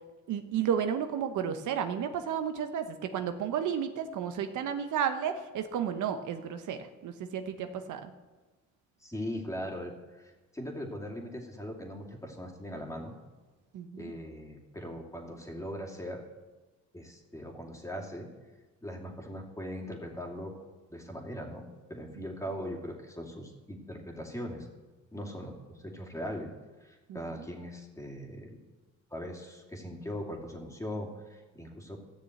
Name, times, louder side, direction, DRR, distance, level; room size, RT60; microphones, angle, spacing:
voice 1, 0.3-8.0 13.7-14.1 22.2-22.3 27.1-27.2, right 8 dB, 80° right, 7 dB, 1.0 m, -32 dB
voice 2, 9.0-13.1 14.0-16.2 16.9-18.3 18.8-21.6 21.9-24.7 25.1-26.5 26.8-28.6 29.1-32.0, equal, 10° left, 1 dB, 2.6 m, -40 dB
14.5 x 6.6 x 8.0 m, 1.2 s
cardioid pair, 90°, 30 cm